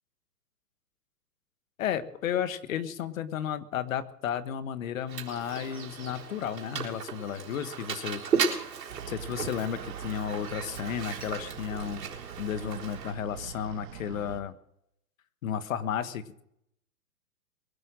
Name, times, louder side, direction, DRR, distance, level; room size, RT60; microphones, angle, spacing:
voice 1, 1.8-8.2 9.1-12.0 12.4-14.5 15.4-16.4, left 9 dB, 55° left, 13 dB, 1.4 m, -33 dB
Mechanisms, 5.1-13.1, right 5 dB, 85° right, 3.9 m, -35 dB
sound 1, 8.9-14.4, right 8 dB, 50° right, 2.0 m, -43 dB
23.0 x 7.8 x 6.3 m, 0.76 s
hypercardioid pair, 140°, 49 cm